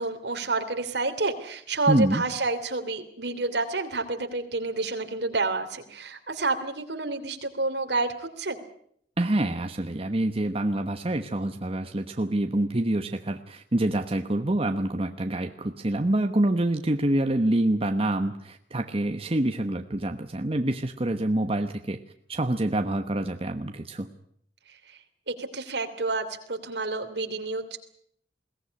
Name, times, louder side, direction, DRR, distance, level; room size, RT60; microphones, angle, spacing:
voice 1, 0.0-8.6 24.9-25.0 25.3-27.8, right 3 dB, 65° right, 7 dB, 3.0 m, -29 dB
voice 2, 1.9-2.2 9.2-22.0 22.3-24.1, right 1 dB, 35° right, 6 dB, 1.1 m, -26 dB
22.0 x 18.0 x 9.9 m, 0.68 s
head